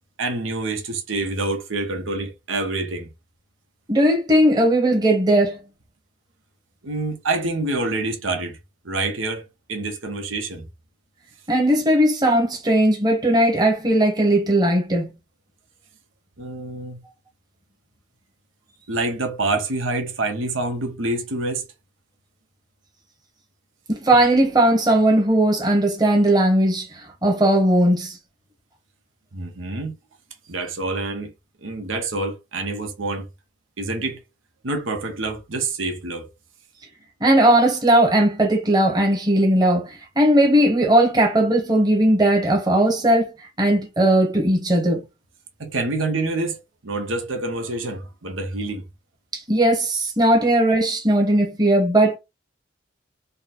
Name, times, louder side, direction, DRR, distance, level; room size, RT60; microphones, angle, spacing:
voice 1, 0.2-3.1 6.8-8.6 8.8-10.7 16.4-17.0 18.9-21.7 29.3-29.9 30.5-31.3 31.6-33.3 33.8-34.2 34.6-36.3 45.6-48.8, right 2 dB, 80° right, 1.0 m, -27 dB
voice 2, 3.9-5.6 11.5-15.1 23.9-28.2 37.2-43.3 43.6-45.0 49.3-52.2, right 1 dB, 20° right, 1.1 m, -18 dB
4.0 x 2.2 x 4.2 m
head